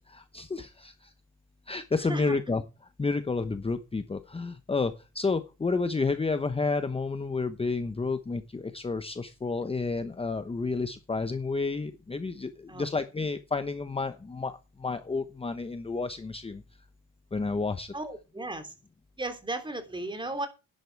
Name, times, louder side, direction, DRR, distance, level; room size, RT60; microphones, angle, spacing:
voice 1, 0.1-1.1 1.7-2.6 3.0-16.6 17.3-17.9, left 4 dB, 20° left, 10 dB, 1.0 m, -30 dB
voice 2, 2.0-2.4 12.7-12.9 17.9-18.7 19.2-20.5, right 2 dB, 15° right, 7 dB, 3.1 m, -35 dB
11.0 x 10.5 x 4.7 m, 0.29 s
cardioid pair, 95°, 30 cm